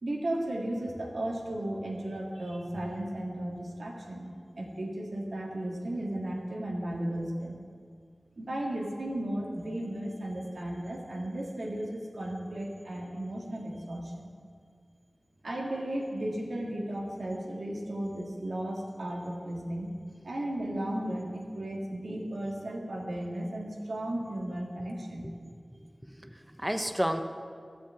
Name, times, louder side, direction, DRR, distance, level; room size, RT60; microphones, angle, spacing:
voice 1, 0.0-4.3 4.6-7.6 8.4-14.3 15.4-19.9 20.2-25.3, right 1 dB, 80° right, -1 dB, 2.2 m, -35 dB
voice 2, 25.8-27.2, equal, 10° right, 6 dB, 0.8 m, -33 dB
13.0 x 7.7 x 8.1 m, 2.1 s
wide cardioid pair, 65°, 0 cm